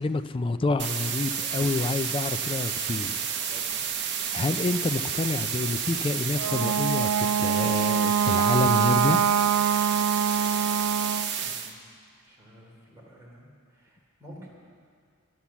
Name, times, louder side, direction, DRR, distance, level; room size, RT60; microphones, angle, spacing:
voice 1, 0.0-3.2 4.3-9.3, left 3 dB, 25° left, 11 dB, 0.4 m, -28 dB
sound 1, 0.8-11.7, right 7 dB, 50° right, 0.9 m, -30 dB
voice 2, 3.4-3.8 11.4-11.9 12.2-14.5, equal, 15° right, -4 dB, 3.0 m, -50 dB
Wind instrument woodwind instrument, 6.3-11.3, right 8 dB, 85° right, 0.3 m, -24 dB
12.5 x 11.5 x 7.1 m, 2.2 s
head